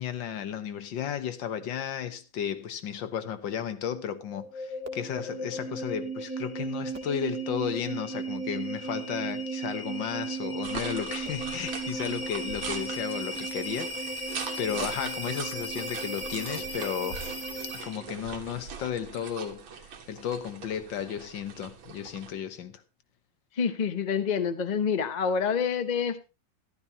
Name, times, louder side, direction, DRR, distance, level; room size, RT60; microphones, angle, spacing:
voice 1, 0.0-17.2 17.8-22.8, left 9 dB, 70° left, 1.8 m, -34 dB
sound 1, 4.2-18.1, right 2 dB, 10° right, 1.6 m, -35 dB
sound 2, 10.6-22.3, right 6 dB, 80° right, 2.2 m, -41 dB
voice 2, 23.6-26.2, left 6 dB, 45° left, 0.5 m, -27 dB
14.0 x 12.0 x 2.8 m
omnidirectional pair, 2.1 m